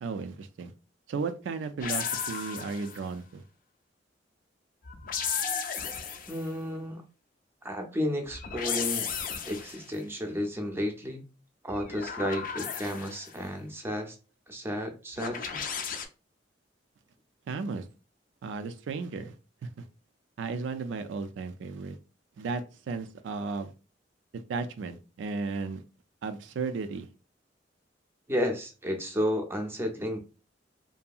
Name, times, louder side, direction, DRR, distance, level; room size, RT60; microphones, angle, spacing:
voice 1, 0.0-0.7 1.1-3.4 17.5-17.9 18.4-19.4 19.6-19.9 20.4-22.0 22.4-23.7 24.3-25.8 26.2-27.1, right 4 dB, 85° right, 0.3 m, -34 dB
sound 1, 1.8-3.1 4.8-6.5 8.3-9.9 11.7-13.3 15.2-16.1, left 6 dB, 50° left, 0.4 m, -34 dB
voice 2, 6.3-7.0 7.6-9.1 9.4-11.3 11.6-14.2 14.5-15.6 28.3-30.2, equal, 15° right, 0.5 m, -32 dB
2.7 x 2.6 x 2.3 m
head